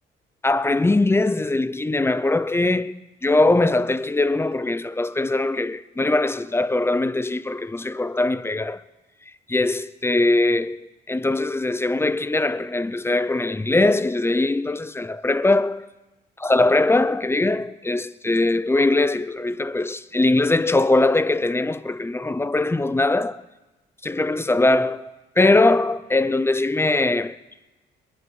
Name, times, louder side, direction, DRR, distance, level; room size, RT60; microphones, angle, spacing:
voice 1, 0.4-2.9 3.2-8.8 9.5-15.9 16.4-23.4 24.0-27.4, left 2 dB, 10° left, 0.6 m, -21 dB
21.0 x 11.0 x 6.3 m
cardioid pair, 90°, 20 cm